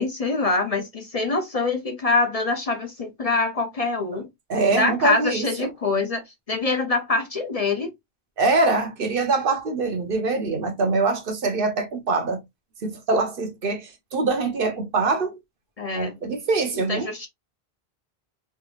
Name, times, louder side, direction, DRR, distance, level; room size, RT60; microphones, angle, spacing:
voice 1, 0.0-4.3 4.7-6.2 6.5-7.9 15.8-16.1 16.9-17.3, left 3 dB, 45° left, 0.6 m, -24 dB
voice 2, 4.5-5.7 8.4-12.4 12.8-15.4 15.9-17.1, right 3 dB, 60° right, 1.0 m, -24 dB
3.4 x 3.3 x 2.3 m
omnidirectional pair, 1.0 m